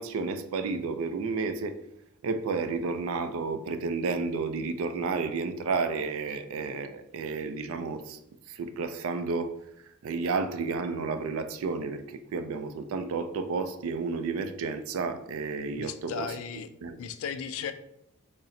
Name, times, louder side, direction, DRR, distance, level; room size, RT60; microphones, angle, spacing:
voice 1, 0.0-1.8 2.2-8.2 8.5-9.6 10.0-16.3 16.8-17.0, right 4 dB, 70° right, 0.3 m, -31 dB
voice 2, 15.8-16.7 17.0-17.7, left 7 dB, 65° left, 0.3 m, -35 dB
4.1 x 2.0 x 3.7 m
head